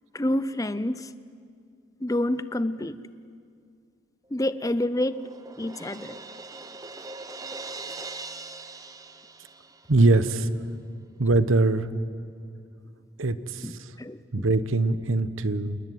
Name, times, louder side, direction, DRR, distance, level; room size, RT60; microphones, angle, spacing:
voice 1, 0.1-1.1 2.0-3.0 4.3-5.2 5.6-6.2 13.6-14.5, left 1 dB, 15° left, 14 dB, 0.6 m, -28 dB
Crash cymbal, 4.4-10.1, right 3 dB, 15° right, 0.8 m, -41 dB
voice 2, 9.9-10.5 11.2-11.9 13.2-13.9 14.3-15.8, right 2 dB, 80° right, 13 dB, 1.1 m, -22 dB
28.0 x 21.0 x 9.3 m, 2.3 s
head